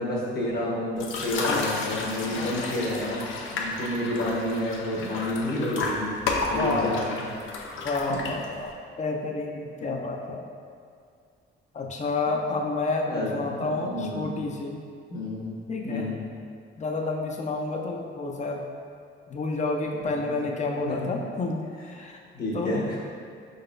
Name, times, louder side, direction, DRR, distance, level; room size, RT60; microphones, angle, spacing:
voice 1, 0.0-6.2 6.5-7.2 8.1-8.2 13.1-13.3 13.6-14.2 15.1-15.5 15.8-16.2 20.0-20.4 20.8-21.1 22.3-23.0, left 1 dB, 50° left, -5 dB, 1.2 m, -30 dB
sound 1, 1.0-8.7, left 3 dB, 80° left, 0.6 m, -32 dB
voice 2, 6.5-7.1 7.8-8.7 9.0-10.4 11.7-14.8 15.7-16.1 16.8-18.6 19.3-22.2 22.5-22.8, left 3 dB, 35° left, 1 dB, 0.6 m, -30 dB
4.5 x 3.9 x 2.6 m, 2.3 s
cardioid pair, 90°, 20 cm